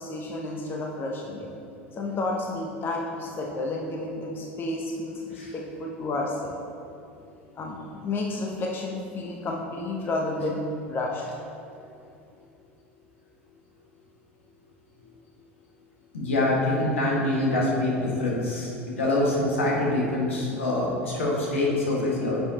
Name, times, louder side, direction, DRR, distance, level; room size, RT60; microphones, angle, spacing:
voice 1, 0.0-1.5 2.0-6.6 7.6-11.2, left 2 dB, 30° left, 0 dB, 1.0 m, -31 dB
voice 2, 16.1-18.7 19.0-22.4, left 2 dB, 75° left, -3 dB, 1.8 m, -25 dB
10.0 x 6.8 x 3.0 m, 2.6 s
figure-of-eight pair, 75°, 7 cm